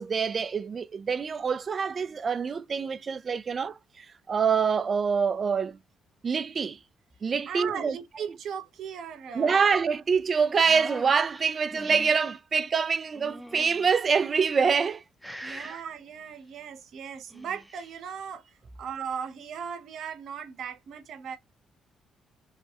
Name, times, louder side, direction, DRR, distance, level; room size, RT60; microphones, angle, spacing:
voice 1, 0.0-5.8 6.2-6.8 7.2-8.0 9.3-15.0 15.4-15.8, right 6 dB, 40° right, 0.3 m, -26 dB
voice 2, 7.5-9.7 15.4-21.4, right 7 dB, 70° right, 0.8 m, -38 dB
sound 1, 10.6-12.3 13.1-14.0 14.6-15.0 15.2-15.8 17.1-17.9, equal, ahead, 0.6 m, -44 dB
3.2 x 2.1 x 2.7 m
cardioid pair, 90°, 0 cm